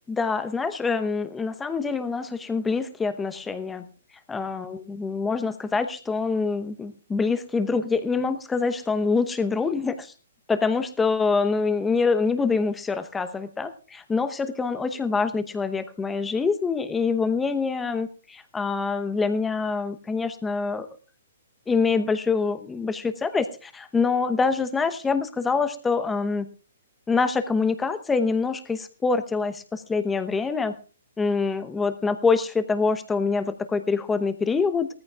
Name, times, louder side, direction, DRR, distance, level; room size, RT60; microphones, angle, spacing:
voice 1, 0.1-3.9 4.3-10.1 10.5-20.9 21.7-26.5 27.1-30.7 31.2-34.9, left 4 dB, 10° left, 10 dB, 0.9 m, -25 dB
19.0 x 14.0 x 2.4 m, 0.36 s
hypercardioid pair, 130°, 0 cm